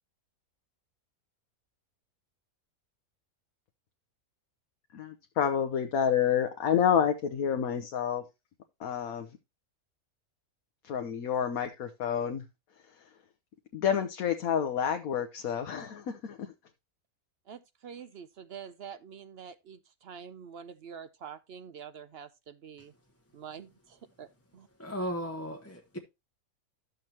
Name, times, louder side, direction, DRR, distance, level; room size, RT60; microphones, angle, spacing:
voice 1, 4.9-8.2 8.8-9.3 10.9-12.4 13.7-16.5, left 8 dB, 75° left, 1.3 m, -29 dB
voice 2, 17.5-22.9 23.3-24.3 24.5-24.7, right 7 dB, 60° right, 0.7 m, -46 dB
voice 3, 24.8-26.0, equal, 15° left, 0.8 m, -35 dB
12.0 x 6.6 x 2.9 m
omnidirectional pair, 1.5 m